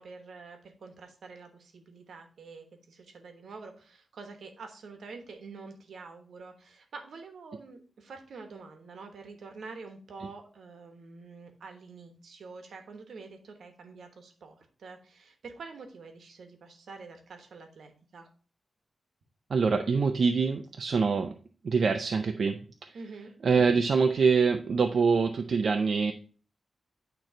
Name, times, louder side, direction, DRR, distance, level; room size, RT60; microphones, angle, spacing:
voice 1, 0.0-18.3 22.9-23.3, right 4 dB, 80° right, 6 dB, 1.1 m, -47 dB
voice 2, 19.5-21.3 21.6-23.0 23.4-26.1, right 5 dB, 60° right, 5 dB, 0.4 m, -25 dB
8.9 x 3.1 x 4.3 m, 0.41 s
wide cardioid pair, 110°, 0 cm